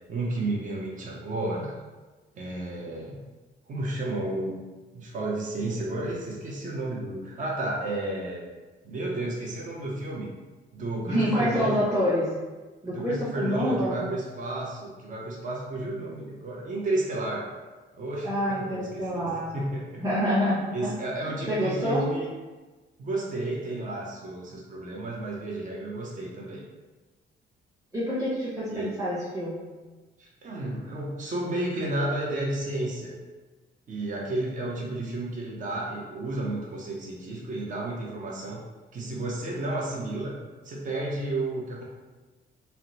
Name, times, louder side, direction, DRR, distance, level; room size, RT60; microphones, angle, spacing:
voice 1, 0.0-1.7 2.3-3.2 3.7-4.6 4.9-8.4 8.8-10.3 10.7-11.8 12.8-17.5 17.9-20.0 20.7-22.3 23.0-26.6 28.7-28.9 30.2-33.1 33.9-38.6 38.9-40.4 40.6-41.8, right 2 dB, 40° right, -3 dB, 0.7 m, -32 dB
voice 2, 11.1-12.3 12.8-14.0 18.2-19.6 20.0-20.9 21.2-22.1 27.9-29.7, equal, 15° right, -11 dB, 1.1 m, -27 dB
2.8 x 2.1 x 3.9 m, 1.2 s
cardioid pair, 90°, 20 cm